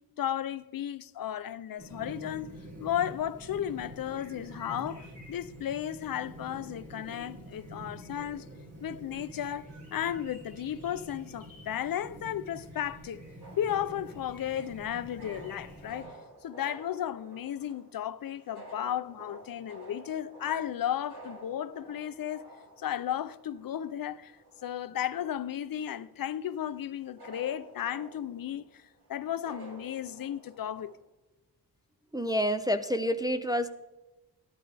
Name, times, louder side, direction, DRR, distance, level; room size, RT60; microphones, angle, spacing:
voice 1, 0.2-2.5 2.8-8.5 8.8-13.2 13.6-16.1 16.4-22.4 22.8-24.4 24.6-28.8 29.1-30.9, left 10 dB, 65° left, 0.5 m, -34 dB
Chirp tweet, 1.8-16.0, right 1 dB, 40° right, 2.7 m, -47 dB
sound 1, 13.4-30.9, right 2 dB, 85° right, 2.4 m, -52 dB
voice 2, 32.1-33.7, equal, 10° right, 0.3 m, -28 dB
14.0 x 10.5 x 3.3 m
wide cardioid pair, 155°, 38 cm